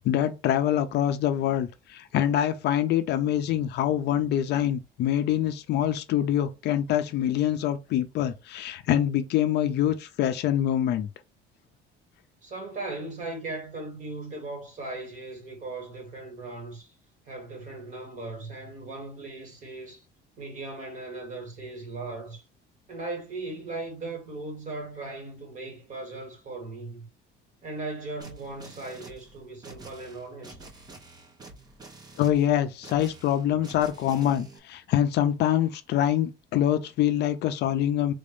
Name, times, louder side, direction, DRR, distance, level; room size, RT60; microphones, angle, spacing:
voice 1, 0.0-11.1 32.2-38.1, left 11 dB, 55° left, 0.4 m, -25 dB
voice 2, 12.4-16.9 17.3-20.0 20.4-22.4 22.9-27.1 27.6-30.7, right 2 dB, 35° right, 1.7 m, -38 dB
sound 1, 28.2-34.6, right 3 dB, 20° right, 0.6 m, -48 dB
3.5 x 2.6 x 3.5 m
cardioid pair, 175°, 21 cm